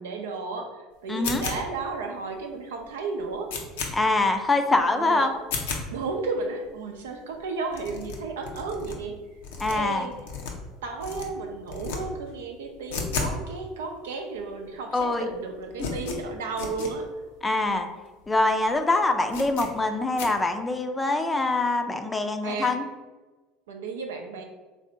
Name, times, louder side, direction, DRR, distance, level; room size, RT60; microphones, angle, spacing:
voice 1, 0.0-3.5 4.9-5.3 5.9-9.2 9.7-10.1 10.8-17.2 22.4-22.8 23.7-24.4, right 4 dB, 85° right, 3 dB, 0.5 m, -33 dB
voice 2, 1.1-1.4 3.9-5.3 9.6-10.1 14.9-15.3 17.4-17.9 18.3-22.8, left 2 dB, 15° left, 6 dB, 0.4 m, -24 dB
sound 1, 1.2-1.9 2.4-2.5 2.8-2.9 3.2-3.9 4.4-4.5 4.8-4.9 5.4-5.9 6.4-6.5 6.6-6.7 7.0-7.1 7.3-7.4 7.7-9.0 9.4-10.7 11.0-11.3 11.7-12.0 12.3-13.4 13.6-13.7 14.4-14.5 14.7-15.0 15.3-16.9 17.4-17.5 17.7-17.8 18.2-18.4 18.7-18.8 19.3-19.7 20.2-20.3, left 5 dB, 80° left, 0.6 m, -34 dB
3.2 x 2.5 x 3.8 m, 1.3 s
hypercardioid pair, 80°, 0 cm